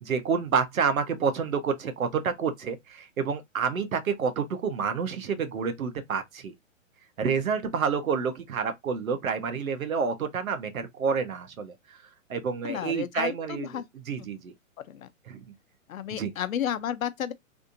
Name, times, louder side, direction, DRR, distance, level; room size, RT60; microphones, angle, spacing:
voice 1, 0.0-6.5 7.2-12.0 12.3-13.8 14.1-14.5 15.3-15.4 16.1-16.3, right 6 dB, 85° right, 1.1 m, -29 dB
voice 2, 12.6-13.9 14.2-14.3 14.8-15.1 15.9-17.3, left 9 dB, 85° left, 0.7 m, -32 dB
3.4 x 2.6 x 2.6 m
hypercardioid pair, 155°, 40 cm